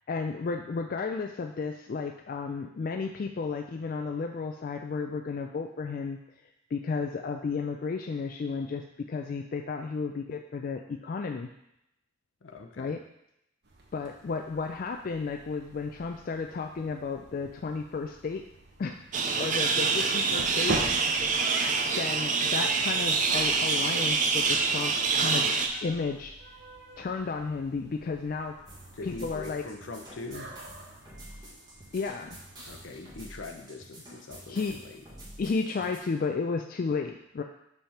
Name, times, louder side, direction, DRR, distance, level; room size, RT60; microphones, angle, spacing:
voice 1, 0.1-6.2 6.7-11.5 12.8-13.0 13.9-18.4 18.8-19.0 19.4-20.8 22.0-25.5 25.8-26.4 27.0-28.6 29.1-29.7 31.9-32.4 34.5-34.8 35.4-37.4, left 4 dB, 45° left, 4 dB, 0.3 m, -33 dB
voice 2, 12.4-12.9 20.0-20.9 21.2-21.4 28.9-30.5 32.6-35.0, left 3 dB, 75° left, 4 dB, 0.7 m, -42 dB
sound 1, 13.6-32.8, right 2 dB, 60° right, 1.0 m, -44 dB
sound 2, 19.1-25.7, right 4 dB, 40° right, 0.5 m, -26 dB
sound 3, 28.7-36.0, right 1 dB, 20° right, 1.4 m, -48 dB
5.5 x 3.5 x 5.7 m, 0.81 s
head